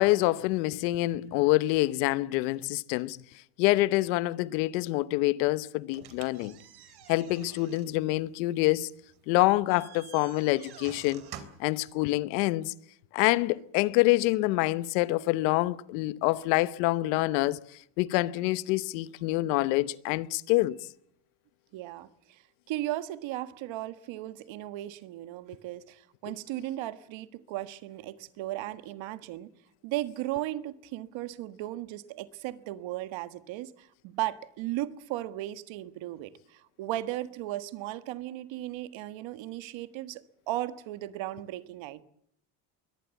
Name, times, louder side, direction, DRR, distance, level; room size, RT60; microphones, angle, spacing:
voice 1, 0.0-3.2 3.6-6.6 7.1-8.9 9.3-11.2 11.6-12.7 13.1-17.6 18.0-20.8, left 19 dB, 85° left, 1.0 m, -26 dB
sound 1, 5.9-11.8, right 9 dB, 50° right, 3.4 m, -49 dB
voice 2, 21.7-29.5 29.8-42.0, right 15 dB, 65° right, 1.6 m, -36 dB
23.0 x 18.5 x 8.3 m
supercardioid pair, 110°, 50 cm